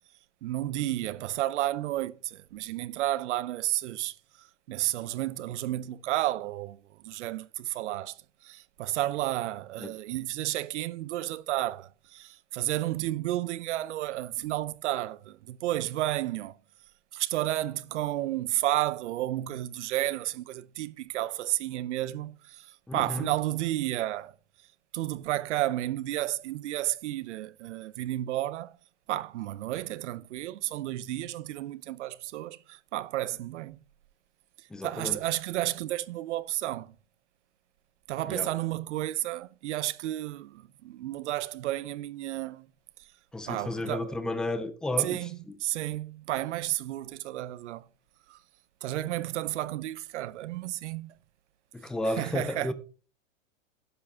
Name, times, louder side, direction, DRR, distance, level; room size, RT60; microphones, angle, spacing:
voice 1, 0.4-16.6 17.1-24.3 24.9-28.8 29.1-33.8 34.8-36.9 38.1-42.7 43.0-43.1 43.5-44.2 45.0-47.9 48.3-48.4 48.8-51.1 52.2-52.7, right 15 dB, 60° right, 0.7 m, -32 dB
voice 2, 22.9-23.3 34.7-35.2 38.3-38.5 43.3-45.3 51.7-52.7, left 1 dB, ahead, 0.4 m, -32 dB
12.0 x 8.5 x 3.5 m
hypercardioid pair, 130°, 39 cm